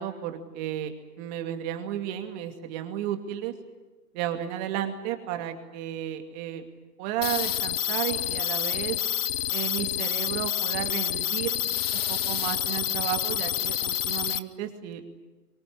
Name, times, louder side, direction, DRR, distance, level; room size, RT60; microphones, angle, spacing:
voice 1, 0.0-3.5 4.1-6.7 7.0-9.0 9.5-11.6 11.9-15.1, right 11 dB, 25° right, 6 dB, 2.4 m, -33 dB
sound 1, 7.2-14.4, left 11 dB, 40° left, 0.9 m, -28 dB
24.5 x 23.0 x 10.0 m, 1.2 s
hypercardioid pair, 150°, 47 cm